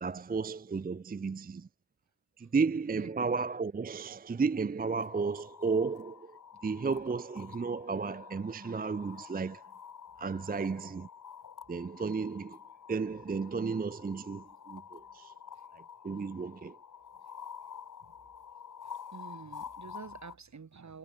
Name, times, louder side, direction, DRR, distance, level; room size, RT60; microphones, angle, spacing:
voice 1, 0.0-1.7 2.4-9.6 10.2-11.1 11.7-12.6 12.9-15.3 15.7-16.8, right 4 dB, 25° right, 0.5 m, -33 dB
sound 1, 4.8-20.3, left 7 dB, 70° left, 1.1 m, -49 dB
voice 2, 19.1-21.0, right 5 dB, 55° right, 1.7 m, -47 dB
cardioid pair, 50°, 33 cm